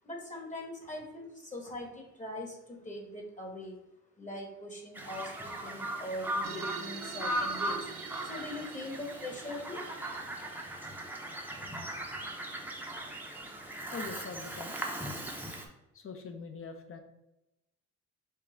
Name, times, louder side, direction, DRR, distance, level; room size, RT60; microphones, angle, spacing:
voice 1, 0.0-3.8 4.2-7.9 8.2-9.8, left 1 dB, 25° left, 1 dB, 1.2 m, -41 dB
Bird vocalization bird call bird song, 5.0-15.7, right 1 dB, 5° right, 0.7 m, -38 dB
sound 1, 6.4-11.3, right 8 dB, 50° right, 0.5 m, -46 dB
voice 2, 13.9-14.8 15.9-17.0, left 4 dB, 45° left, 5 dB, 0.8 m, -43 dB
5.3 x 2.4 x 3.9 m, 0.92 s
cardioid pair, 90°, 30 cm